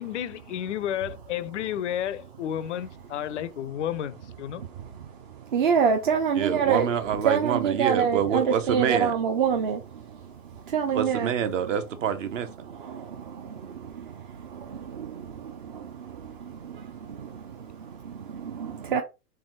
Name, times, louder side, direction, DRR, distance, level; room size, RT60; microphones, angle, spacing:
voice 1, 0.0-4.6 18.9-19.0, left 10 dB, 50° left, 0.4 m, -32 dB
voice 2, 4.5-11.3 12.6-19.0, right 7 dB, 35° right, 0.4 m, -28 dB
voice 3, 6.4-9.1 10.9-12.5, right 8 dB, 50° right, 0.9 m, -27 dB
3.5 x 3.4 x 3.1 m
figure-of-eight pair, 105°, 49 cm